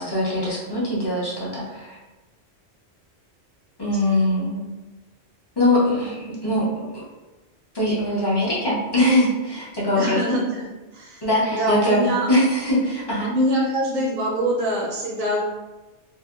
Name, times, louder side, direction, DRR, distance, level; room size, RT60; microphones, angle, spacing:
voice 1, 0.0-2.0 3.8-4.6 5.6-7.0 7.7-10.2 11.2-13.3, left 1 dB, 30° left, -7 dB, 0.5 m, -22 dB
voice 2, 9.9-10.7 10.9-11.2 11.5-12.3 13.2-15.4, equal, 55° right, -5 dB, 0.6 m, -24 dB
2.6 x 2.1 x 2.3 m, 1.2 s
omnidirectional pair, 1.2 m